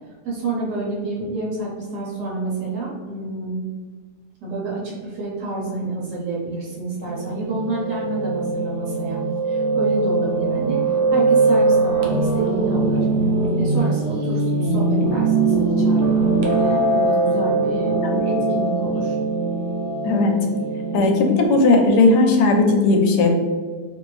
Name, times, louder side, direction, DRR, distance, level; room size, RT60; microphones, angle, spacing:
voice 1, 0.2-3.6 4.4-9.2 9.5-10.8 11.1-13.1 13.5-19.2, right 2 dB, 85° right, -5 dB, 1.4 m, -29 dB
Piano, 7.0-21.5, right 3 dB, 65° right, 0.7 m, -21 dB
voice 2, 20.9-23.3, left 3 dB, 85° left, 2 dB, 1.2 m, -16 dB
2.9 x 2.6 x 3.1 m, 1.5 s
omnidirectional pair, 1.7 m